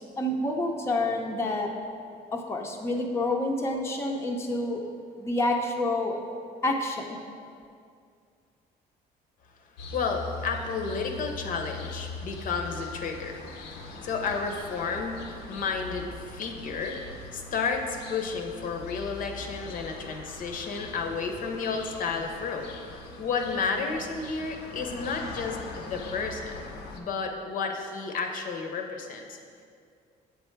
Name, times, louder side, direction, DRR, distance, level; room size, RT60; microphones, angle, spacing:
voice 1, 0.0-1.7 2.3-4.8 5.2-6.2 6.6-7.2, left 2 dB, 15° left, 1 dB, 0.5 m, -28 dB
sound 1, 9.8-27.0, left 3 dB, 90° left, 0.6 m, -42 dB
voice 2, 9.9-13.4 13.8-22.7 23.2-26.6 26.9-29.4, left 4 dB, 55° left, 3 dB, 0.6 m, -32 dB
7.7 x 3.4 x 4.4 m, 2.3 s
cardioid pair, 110°, 17 cm